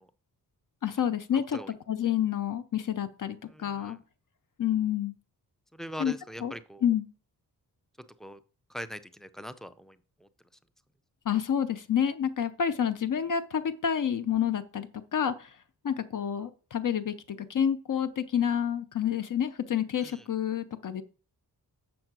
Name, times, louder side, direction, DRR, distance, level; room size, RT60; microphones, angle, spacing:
voice 1, 0.8-1.6 1.9-4.0 4.6-5.1 6.0-6.1 6.4-6.5 6.8-7.1 11.3-15.5 15.8-21.0, left 9 dB, 55° left, 10 dB, 0.7 m, -29 dB
voice 2, 1.3-1.7 3.5-4.0 5.7-6.8 8.2-8.4 8.7-10.3 20.0-20.3, equal, ahead, 12 dB, 0.4 m, -42 dB
7.7 x 6.4 x 6.0 m, 0.38 s
wide cardioid pair, 180°, 38 cm